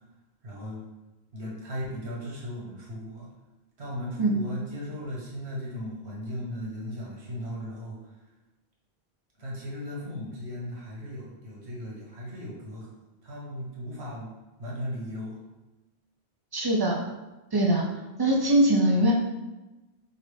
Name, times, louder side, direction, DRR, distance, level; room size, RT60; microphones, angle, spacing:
voice 1, 0.4-0.8 1.3-3.3 3.8-8.0 9.4-12.9 13.2-14.3 14.6-15.4, equal, 90° right, -4 dB, 1.4 m, -37 dB
voice 2, 16.5-17.0 17.5-17.8 18.2-19.1, right 1 dB, 40° right, 0 dB, 0.3 m, -22 dB
5.5 x 2.5 x 3.2 m, 1.1 s
omnidirectional pair, 1.1 m